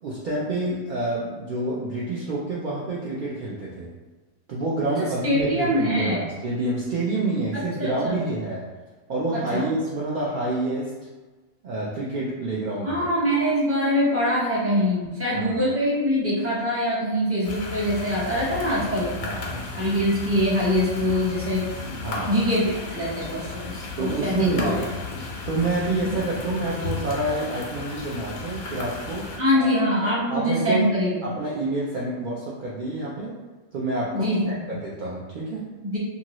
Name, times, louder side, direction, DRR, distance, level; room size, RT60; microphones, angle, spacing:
voice 1, 0.0-3.9 4.5-8.7 9.1-10.9 11.6-13.1 15.3-15.6 19.2-19.7 22.0-22.4 24.0-25.0 25.5-29.9 30.3-30.9 31.2-33.4 33.7-35.7, right 2 dB, 70° right, -6 dB, 0.4 m, -28 dB
voice 2, 5.0-6.3 7.8-8.2 9.5-9.7 12.8-19.1 19.8-21.7 22.3-24.8 29.4-31.1 34.1-34.6 35.8-36.0, equal, 15° right, -7 dB, 0.5 m, -23 dB
sound 1, 17.4-29.4, left 4 dB, 90° left, 1.1 m, -35 dB
2.7 x 2.6 x 2.9 m, 1.3 s
omnidirectional pair, 1.4 m